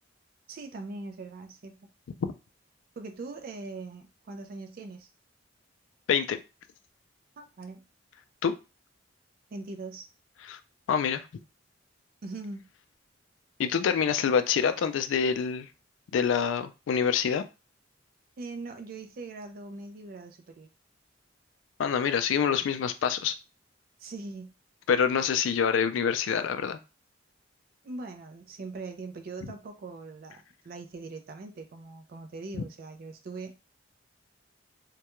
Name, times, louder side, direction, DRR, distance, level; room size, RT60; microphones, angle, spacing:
voice 1, 0.5-1.9 3.0-5.1 7.4-7.9 9.5-10.1 12.2-12.7 18.4-20.7 24.0-24.5 27.8-33.6, right 3 dB, 50° right, 0.4 m, -41 dB
voice 2, 10.9-11.2 13.6-15.7 16.1-17.4 21.8-23.3 24.9-26.8, left 7 dB, 75° left, 0.3 m, -26 dB
2.3 x 2.2 x 2.9 m
head